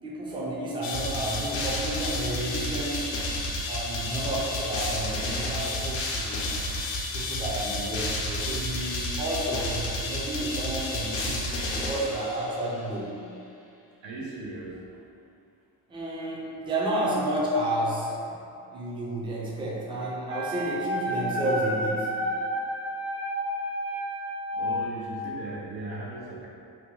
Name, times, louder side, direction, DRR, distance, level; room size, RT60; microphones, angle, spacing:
voice 1, 0.0-3.2 3.7-6.5 7.1-13.2 15.9-18.4 18.7-22.1, right 1 dB, 10° right, -5 dB, 0.4 m, -31 dB
sound 1, 0.8-12.7, left 1 dB, 85° left, 0.6 m, -31 dB
voice 2, 14.0-15.0 24.5-26.5, right 2 dB, 90° right, -4 dB, 0.7 m, -38 dB
Wind instrument woodwind instrument, 20.2-25.0, equal, 45° right, 1.1 m, -31 dB
2.8 x 2.2 x 3.1 m, 2.6 s
cardioid pair, 115°, 43 cm